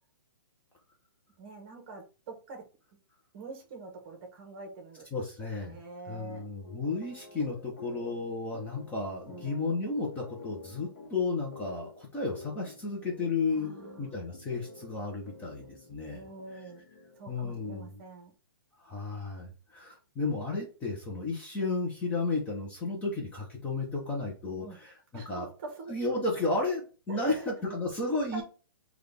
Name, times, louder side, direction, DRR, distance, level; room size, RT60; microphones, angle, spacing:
voice 1, 1.4-2.6 3.3-5.0 5.6-6.4 9.3-9.7 13.5-14.2 16.1-16.8 17.2-18.3 24.6-24.8 25.1-25.9 27.1-27.5 28.3-28.4, right 3 dB, 30° right, 2 dB, 1.2 m, -45 dB
voice 2, 5.1-5.8 6.0-16.3 17.3-17.9 18.8-25.5 25.9-28.4, left 3 dB, 10° left, -2 dB, 0.7 m, -33 dB
sound 1, 6.3-18.0, left 3 dB, 50° left, 1.0 m, -50 dB
3.9 x 2.4 x 3.3 m, 0.35 s
hypercardioid pair, 160°, 12 cm